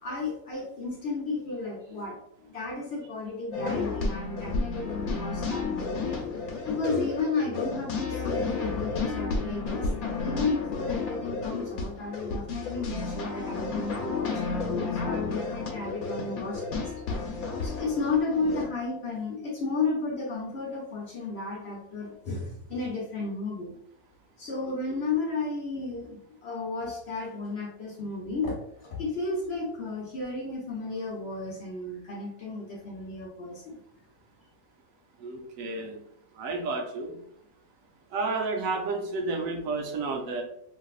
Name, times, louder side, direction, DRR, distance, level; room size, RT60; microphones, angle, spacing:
voice 1, 0.0-2.2 2.5-6.1 6.7-9.9 10.2-14.6 14.9-16.9 17.6-23.7 24.4-33.8, left 3 dB, 55° left, -2 dB, 0.8 m, -33 dB
sound 1, 3.5-18.6, left 4 dB, 75° left, 1.1 m, -32 dB
voice 2, 35.2-36.0 36.4-37.2 38.1-40.4, right 3 dB, 75° right, 3 dB, 1.0 m, -31 dB
3.3 x 2.6 x 2.3 m, 0.72 s
omnidirectional pair, 1.5 m